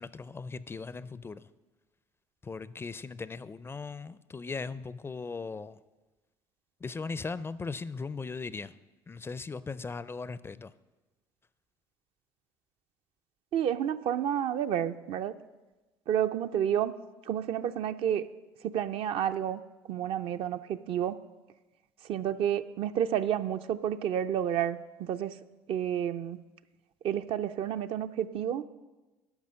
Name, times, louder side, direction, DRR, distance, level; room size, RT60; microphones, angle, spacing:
voice 1, 0.0-1.5 2.4-5.8 6.8-8.7 9.1-10.7, left 4 dB, 20° left, 0.4 m, -38 dB
voice 2, 13.5-15.3 16.1-16.9 17.2-18.3 18.6-19.6 19.9-21.2 22.0-25.4 25.7-26.4 27.0-28.6, right 10 dB, 60° right, 0.5 m, -30 dB
12.0 x 5.5 x 6.4 m
hypercardioid pair, 70°, 11 cm